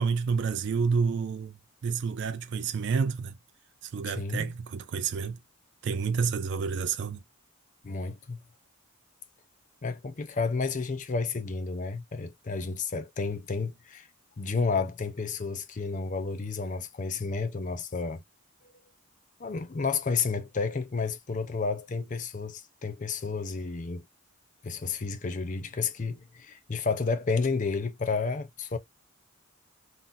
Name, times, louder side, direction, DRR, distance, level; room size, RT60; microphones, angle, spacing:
voice 1, 0.0-1.5 1.8-3.4 3.8-5.4 5.8-7.2, right 5 dB, 50° right, 0.3 m, -29 dB
voice 2, 4.1-4.5 7.8-8.4 9.8-14.1 14.4-18.2 19.4-24.1 24.6-28.8, left 4 dB, 35° left, 0.5 m, -31 dB
3.9 x 2.0 x 2.4 m
head